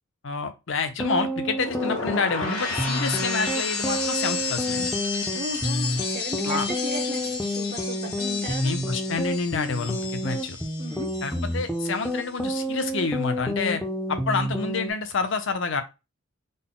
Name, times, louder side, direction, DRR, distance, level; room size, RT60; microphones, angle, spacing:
voice 1, 0.2-4.9 6.4-6.7 8.6-10.6 11.2-13.8 14.1-15.8, left 4 dB, 60° left, 0.6 m, -28 dB
sound 1, 0.9-14.9, equal, 5° left, 0.5 m, -29 dB
sound 2, 1.4-11.6 11.8-12.3, left 4 dB, 85° left, 1.2 m, -32 dB
voice 2, 5.3-8.7 10.8-11.5, right 2 dB, 45° right, 0.8 m, -35 dB
3.9 x 2.1 x 3.7 m
head